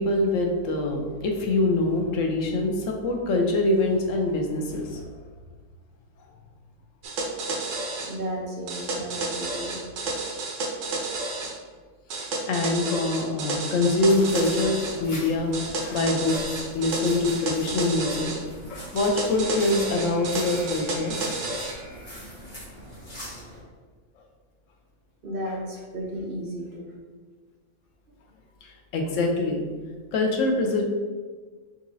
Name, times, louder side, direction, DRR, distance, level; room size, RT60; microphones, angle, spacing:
voice 1, 0.0-5.0 12.1-18.4 18.7-21.2 28.6-29.7 30.1-30.8, left 2 dB, 80° left, 2 dB, 1.0 m, -24 dB
sound 1, 7.0-8.1 8.7-11.5 12.1-15.0 15.5-18.4 19.0-21.7, right 3 dB, 80° right, 1.1 m, -31 dB
voice 2, 7.5-9.8 25.2-27.0, equal, 50° right, -2 dB, 0.9 m, -34 dB
sound 2, 14.0-23.6, equal, 50° left, 1.7 m, -41 dB
5.3 x 3.0 x 2.6 m, 1.5 s
omnidirectional pair, 1.3 m